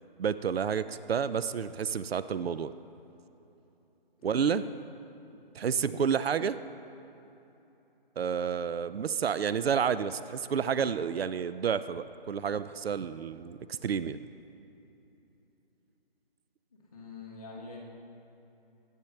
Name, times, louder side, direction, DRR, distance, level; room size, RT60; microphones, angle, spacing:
voice 1, 0.2-2.7 4.2-4.6 5.5-6.6 8.2-14.2, right 7 dB, 80° right, 14 dB, 0.5 m, -30 dB
voice 2, 4.2-4.7 16.9-17.8, left 3 dB, 10° left, -11 dB, 0.5 m, -46 dB
21.0 x 9.0 x 3.2 m, 3.0 s
figure-of-eight pair, 160°, 30 cm